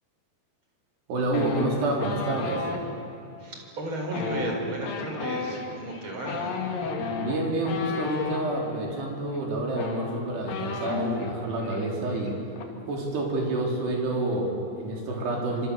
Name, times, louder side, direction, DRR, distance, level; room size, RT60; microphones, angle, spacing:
voice 1, 1.1-2.7 7.2-12.3 12.9-15.7, right 2 dB, 80° right, -1 dB, 6.1 m, -28 dB
sound 1, 1.3-2.8 4.0-8.4 9.4-9.5 9.7-11.3 11.6-11.9 12.1-12.6, left 5 dB, 60° left, 3.7 m, -33 dB
voice 2, 3.4-6.5, right 2 dB, 30° right, 1 dB, 5.0 m, -33 dB
29.0 x 25.5 x 7.1 m, 2.8 s
omnidirectional pair, 4.7 m